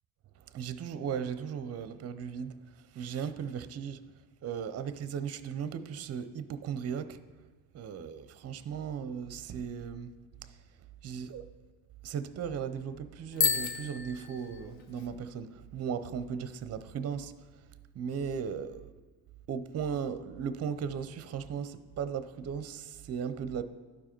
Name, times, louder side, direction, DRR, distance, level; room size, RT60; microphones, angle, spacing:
voice 1, 0.5-2.6 2.9-4.0 4.4-7.2 7.7-10.1 11.0-11.5 12.0-17.3 17.9-18.9 19.5-23.6, right 7 dB, 30° right, 0.5 m, -36 dB
Bicycle bell, 13.3-15.1, left 5 dB, 65° left, 1.0 m, -32 dB
11.5 x 4.8 x 4.4 m
supercardioid pair, 85°, 48 cm